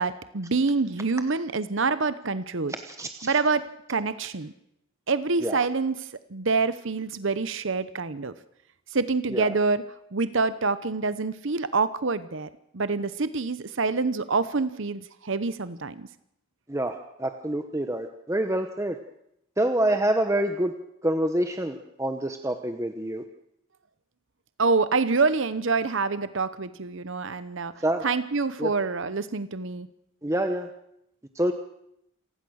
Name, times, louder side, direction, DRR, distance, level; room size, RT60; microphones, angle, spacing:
voice 1, 0.0-2.8 3.2-3.6 3.9-4.5 5.1-8.3 8.9-9.8 10.1-12.5 12.7-16.1 24.6-27.7 28.0-29.9, right 4 dB, 60° right, 14 dB, 0.8 m, -26 dB
voice 2, 2.9-3.3 5.4-5.7 9.3-9.5 16.7-19.0 19.6-20.7 21.0-23.2 27.8-28.0 28.6-28.7 30.2-30.7 31.3-31.5, right 1 dB, 15° right, 6 dB, 1.0 m, -27 dB
28.0 x 15.5 x 6.4 m, 0.77 s
head